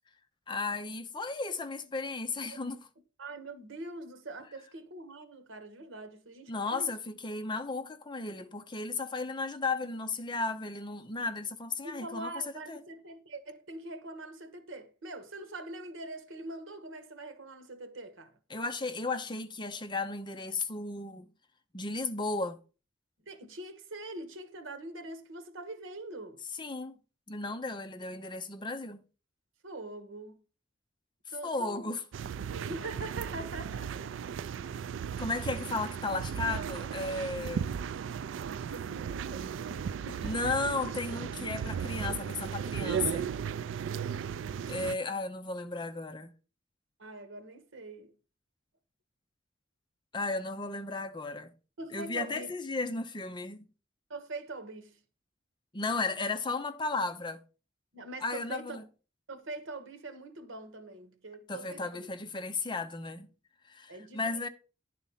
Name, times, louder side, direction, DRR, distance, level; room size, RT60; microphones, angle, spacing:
voice 1, 0.5-2.8 6.5-12.8 18.5-21.3 21.7-22.6 26.6-27.0 27.3-29.0 31.4-32.0 35.2-37.7 40.2-43.2 44.7-46.3 50.1-51.5 51.9-53.6 55.7-57.4 58.2-58.8 61.5-63.3 63.7-64.5, left 3 dB, 25° left, 0.6 m, -34 dB
voice 2, 3.2-6.9 11.8-18.4 23.3-26.4 29.6-30.4 31.3-32.0 32.6-34.1 38.7-40.5 41.7-41.9 47.0-48.1 51.8-52.5 54.1-55.0 57.9-58.9 59.3-62.1 63.9-64.5, right 2 dB, 90° right, 1.3 m, -43 dB
sound 1, 32.1-45.0, right 7 dB, 70° right, 0.3 m, -36 dB
10.0 x 4.1 x 5.5 m
head